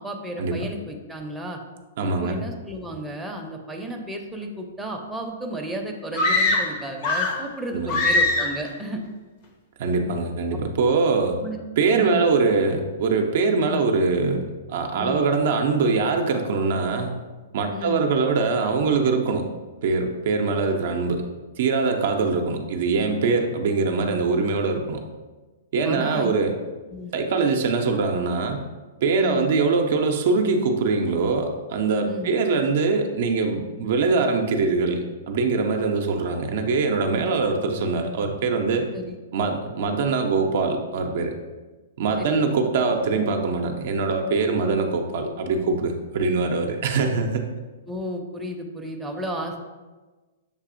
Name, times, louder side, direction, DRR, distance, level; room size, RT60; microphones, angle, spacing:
voice 1, 0.0-1.6 2.0-9.0 10.9-11.0 11.4-11.6 12.0-12.3 15.0-15.2 17.7-18.0 20.7-20.8 25.8-26.3 26.9-27.1 29.2-29.5 32.1-32.3 38.9-39.1 42.2-42.4 47.9-49.6, equal, 5° right, 0 dB, 0.5 m, -33 dB
voice 2, 2.0-2.4 7.7-8.0 9.8-11.3 11.8-17.2 17.5-19.5 19.8-21.2 21.6-25.0 25.7-26.6 27.1-28.7 29.0-38.9 39.3-41.3 42.0-47.5, right 4 dB, 60° right, 4 dB, 0.4 m, -23 dB
sound 1, 6.1-7.5 7.9-8.7, left 2 dB, 50° left, 0.7 m, -22 dB
6.6 x 2.6 x 2.5 m, 1.2 s
hypercardioid pair, 115°, 0 cm